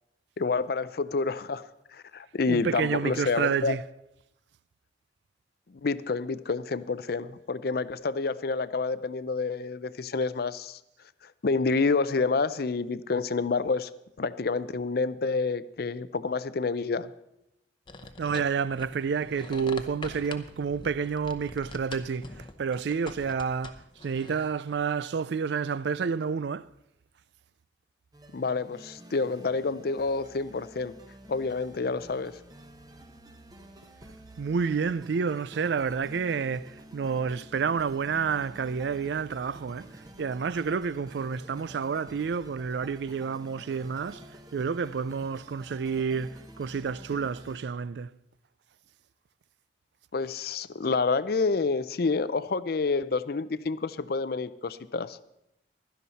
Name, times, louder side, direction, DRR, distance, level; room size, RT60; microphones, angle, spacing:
voice 1, 0.4-1.6 1.9-3.8 5.7-10.8 11.2-13.9 14.2-17.1 28.3-30.9 31.3-32.4 50.1-55.2, left 4 dB, 55° left, 0.5 m, -28 dB
voice 2, 2.5-3.8 18.2-22.3 22.6-26.7 34.4-39.9 40.2-44.2 44.5-48.1, right 6 dB, 65° right, 0.4 m, -29 dB
sound 1, 17.9-24.8, left 3 dB, 25° left, 0.8 m, -45 dB
sound 2, 28.1-47.6, right 1 dB, 20° right, 1.0 m, -50 dB
16.0 x 12.5 x 4.1 m
head